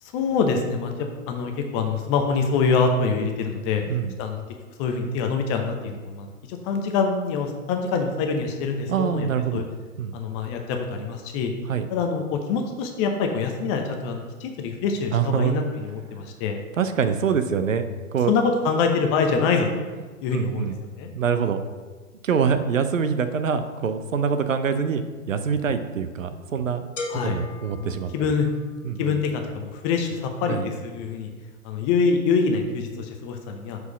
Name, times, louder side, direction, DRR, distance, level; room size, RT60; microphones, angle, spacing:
voice 1, 0.0-3.8 4.2-4.4 4.8-9.6 10.1-11.5 11.9-16.6 18.3-19.9 20.2-20.7 21.0-21.1 27.1-27.4 27.8-28.5 29.0-31.3 31.6-33.8, left 5 dB, 20° left, 4 dB, 0.7 m, -25 dB
voice 2, 8.9-9.6 10.0-10.2 11.7-11.9 15.1-15.5 16.8-17.8 18.1-18.3 20.3-20.8 21.1-21.6 22.2-26.9 27.1-28.1 28.8-29.2 30.5-30.7, right 7 dB, 65° right, 9 dB, 0.8 m, -24 dB
sound 1, 27.0-28.8, left 2 dB, 60° left, 1.4 m, -37 dB
6.7 x 4.7 x 6.2 m, 1.4 s
figure-of-eight pair, 115°, 42 cm